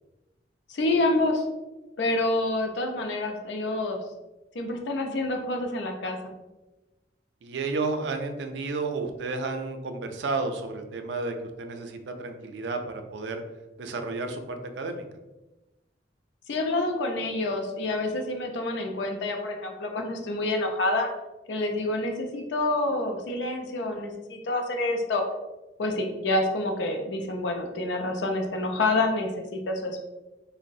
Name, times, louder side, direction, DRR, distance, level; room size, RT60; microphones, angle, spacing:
voice 1, 0.7-1.4 2.0-4.0 4.5-6.2 16.5-21.1 21.5-25.2 25.8-30.0, left 2 dB, 80° left, 3 dB, 0.5 m, -27 dB
voice 2, 7.4-13.4 13.8-15.0, right 3 dB, 70° right, 6 dB, 0.4 m, -32 dB
3.8 x 2.0 x 2.6 m, 1.1 s
head